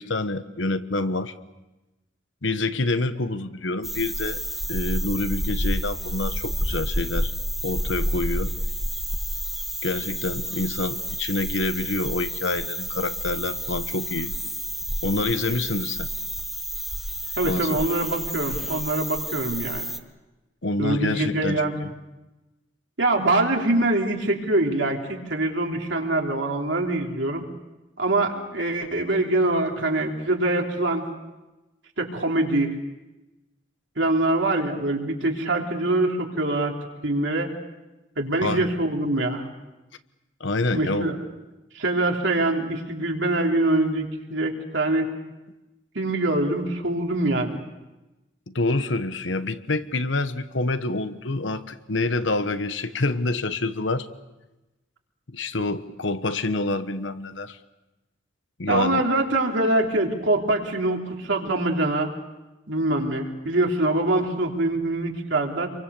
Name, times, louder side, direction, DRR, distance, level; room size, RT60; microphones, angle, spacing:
voice 1, 0.0-1.3 2.4-4.4 4.7-7.3 7.6-8.6 9.8-14.3 15.0-16.1 17.4-17.8 20.6-21.9 38.4-38.8 40.4-41.2 48.5-54.1 55.3-57.6 58.6-59.0, left 2 dB, 70° left, 10 dB, 1.2 m, -27 dB
sound 1, 3.8-20.0, equal, ahead, 1.3 m, -30 dB
voice 2, 17.4-19.8 20.8-21.9 23.0-27.4 28.0-31.0 32.0-32.8 34.0-36.8 37.0-37.5 38.2-39.5 40.7-41.2 41.7-45.1 46.0-47.6 58.7-62.1 62.7-65.7, right 2 dB, 70° right, 1 dB, 3.4 m, -24 dB
28.0 x 24.0 x 7.0 m, 1.0 s
head